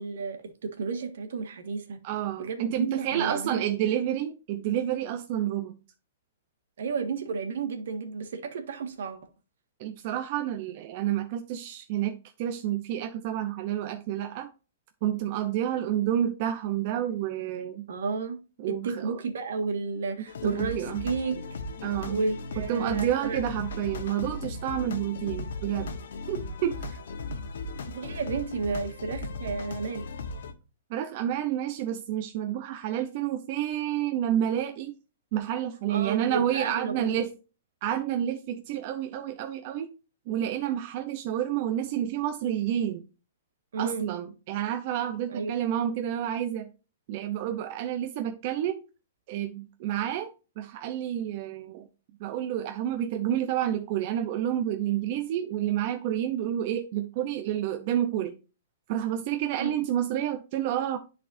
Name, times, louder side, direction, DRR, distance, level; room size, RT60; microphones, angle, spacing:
voice 1, 0.0-2.0 2.4-3.7 6.8-9.2 17.9-18.4 18.7-21.4 22.1-23.4 27.9-30.0 35.9-37.2 43.7-44.1 45.3-45.5 59.6-59.7, right 4 dB, 70° right, 1.6 m, -32 dB
voice 2, 2.0-5.8 9.8-14.5 15.0-17.9 18.6-19.2 20.4-21.1 21.8-22.2 22.6-25.9 26.3-27.0 30.9-34.9 35.3-37.3 37.8-39.9 40.3-43.1 43.8-46.7 47.1-48.8 49.3-50.3 50.6-51.9 52.2-58.4 58.9-61.0, right 11 dB, 40° right, 0.7 m, -29 dB
sound 1, 20.3-30.5, left 3 dB, 75° left, 1.1 m, -37 dB
10.5 x 4.2 x 2.6 m
hypercardioid pair, 160°, 0 cm